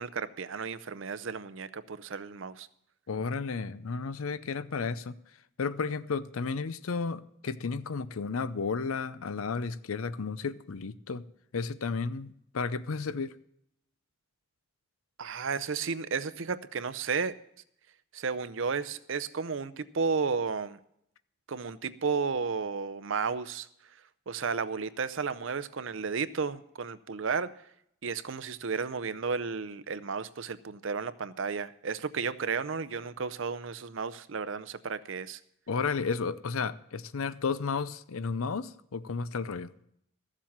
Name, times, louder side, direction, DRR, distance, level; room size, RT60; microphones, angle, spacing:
voice 1, 0.0-2.7 15.2-17.4 18.1-20.8 21.5-23.7 24.3-27.5 28.0-35.4, right 5 dB, 70° right, 0.6 m, -33 dB
voice 2, 3.1-5.1 5.6-11.2 11.5-13.3 35.7-39.7, left 5 dB, 85° left, 0.6 m, -33 dB
14.5 x 7.5 x 7.2 m
head